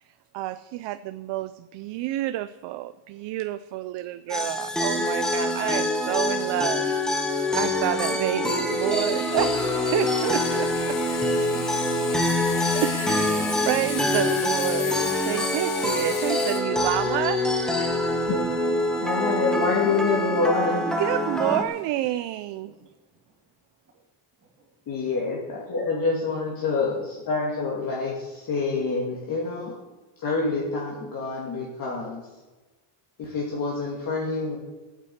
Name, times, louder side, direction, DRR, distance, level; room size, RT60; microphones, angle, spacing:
voice 1, 0.3-11.0 12.7-17.5 17.8-18.0 21.0-22.7, right 14 dB, 60° right, 12 dB, 0.6 m, -29 dB
sound 1, 4.3-21.6, left 1 dB, ahead, 1.1 m, -25 dB
Sawing, 5.6-21.0, left 9 dB, 75° left, 1.8 m, -39 dB
voice 2, 11.2-12.8 17.9-19.4 22.6-22.8 24.4-24.7 25.1-25.2, right 4 dB, 25° right, -1 dB, 2.7 m, -49 dB
voice 3, 19.0-20.8 24.9-29.7 30.2-32.2 33.2-34.6, left 4 dB, 45° left, -4 dB, 2.8 m, -27 dB
13.5 x 9.1 x 8.0 m, 1.2 s
cardioid pair, 170°, 48 cm